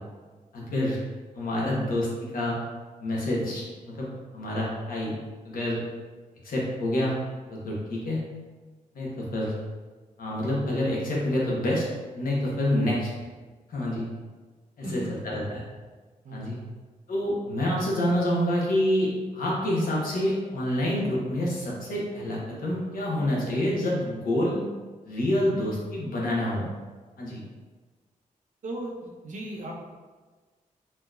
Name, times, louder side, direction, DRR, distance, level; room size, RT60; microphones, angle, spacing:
voice 1, 0.5-1.0 1.3-2.6 3.0-4.1 4.3-5.1 5.4-5.8 6.4-7.1 7.5-8.2 8.9-9.5 10.2-11.8 12.1-13.1 13.7-14.0 14.8-15.6 16.3-16.6 17.1-24.6 25.0-26.7 27.2-27.4, left 1 dB, 80° left, -4 dB, 1.1 m, -27 dB
voice 2, 16.2-16.7 28.6-29.8, right 1 dB, 60° right, -2 dB, 0.8 m, -36 dB
4.3 x 2.9 x 2.4 m, 1.4 s
wide cardioid pair, 135°, 14 cm